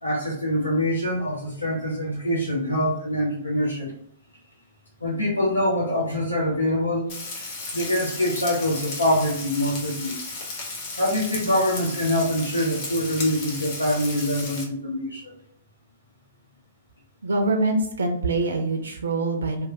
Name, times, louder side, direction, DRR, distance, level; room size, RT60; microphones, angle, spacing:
voice 1, 0.0-3.9 5.0-10.2 11.0-15.4, left 1 dB, 85° left, -5 dB, 0.8 m, -25 dB
Frying (food), 7.1-14.6, left 3 dB, 40° left, 0.9 m, -34 dB
voice 2, 17.2-19.7, right 2 dB, 70° right, 4 dB, 0.4 m, -24 dB
3.0 x 2.1 x 2.6 m, 0.68 s
figure-of-eight pair, 110°, 0 cm